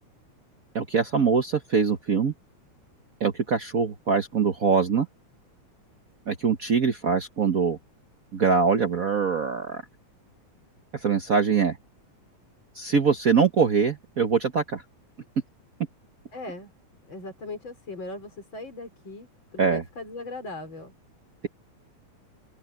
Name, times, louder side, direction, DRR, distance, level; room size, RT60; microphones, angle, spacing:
voice 1, 0.7-2.3 3.2-5.1 6.3-7.8 8.3-9.8 11.0-11.8 12.7-14.8 19.6-19.8, right 5 dB, 75° right, 0.8 m, -23 dB
voice 2, 16.3-16.7 17.1-19.3 19.5-20.9, left 2 dB, 40° left, 5.2 m, -38 dB
open air
omnidirectional pair, 3.3 m